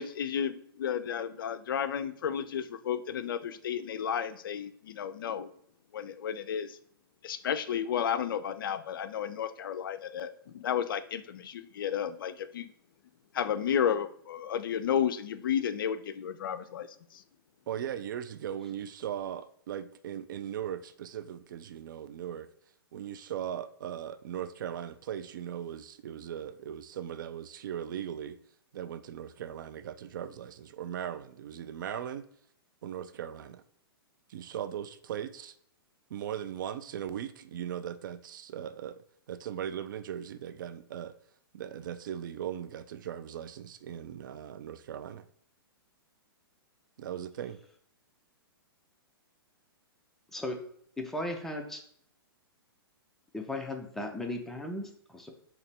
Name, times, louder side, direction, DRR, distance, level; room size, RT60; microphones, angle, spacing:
voice 1, 0.0-5.5 5.9-6.8 7.2-12.7 13.3-16.9, left 8 dB, 60° left, 12 dB, 0.4 m, -32 dB
voice 2, 17.7-22.5 22.9-28.4 28.7-32.2 32.8-33.6 34.3-35.5 36.1-41.1 41.5-45.3 47.0-47.6, right 9 dB, 55° right, 12 dB, 0.4 m, -38 dB
voice 3, 51.0-51.8 53.3-55.3, left 1 dB, 5° left, 2 dB, 0.6 m, -36 dB
4.0 x 2.9 x 3.4 m, 0.64 s
figure-of-eight pair, 115°, 13 cm